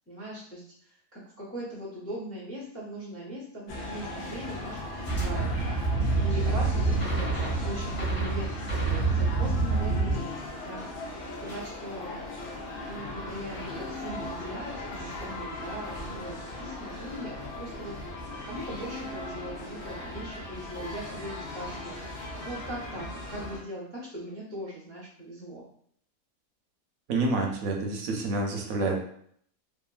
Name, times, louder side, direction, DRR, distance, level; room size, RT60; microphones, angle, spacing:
voice 1, 0.1-5.5 6.1-10.8 11.4-12.2 12.9-25.7, equal, 20° left, -4 dB, 0.4 m, -40 dB
sound 1, 3.7-23.6, left 2 dB, 60° left, 0.6 m, -38 dB
sound 2, 5.1-10.2, right 3 dB, 35° left, 1.2 m, -27 dB
voice 2, 27.1-29.0, right 3 dB, 75° right, 1 dB, 1.0 m, -28 dB
2.8 x 2.4 x 2.4 m, 0.64 s
omnidirectional pair, 1.5 m